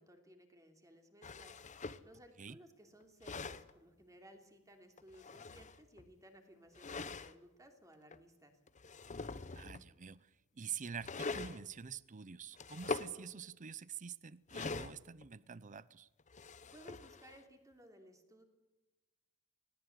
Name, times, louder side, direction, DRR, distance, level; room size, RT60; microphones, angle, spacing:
voice 1, 0.0-8.6 16.7-18.4, right 1 dB, 15° right, 3.1 m, -60 dB
sound 1, 1.2-2.1 3.0-3.7 5.0-6.1 6.7-7.3 8.1-8.2 8.7-9.9 11.0-11.6 12.5-13.1 14.5-15.3 16.2-17.4, left 3 dB, 35° left, 0.9 m, -43 dB
voice 2, 9.6-16.1, right 7 dB, 35° right, 0.6 m, -47 dB
20.0 x 18.0 x 8.1 m
head